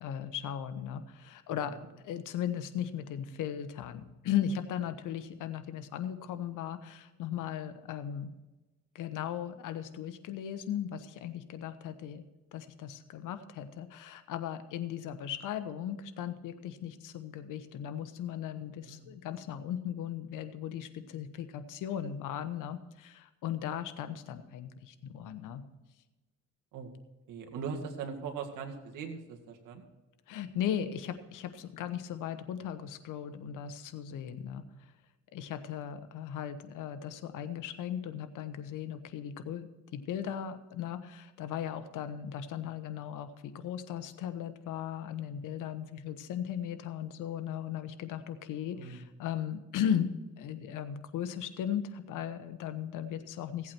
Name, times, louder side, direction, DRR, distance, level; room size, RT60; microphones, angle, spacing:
voice 1, 0.0-1.8 2.0-8.4 8.9-25.6 30.3-34.6 35.3-53.7, left 9 dB, 80° left, 10 dB, 1.1 m, -37 dB
voice 2, 27.3-29.8 34.2-34.4 48.8-49.1, right 5 dB, 80° right, 3 dB, 2.1 m, -40 dB
16.5 x 8.5 x 4.5 m, 1.1 s
cardioid pair, 90°, 31 cm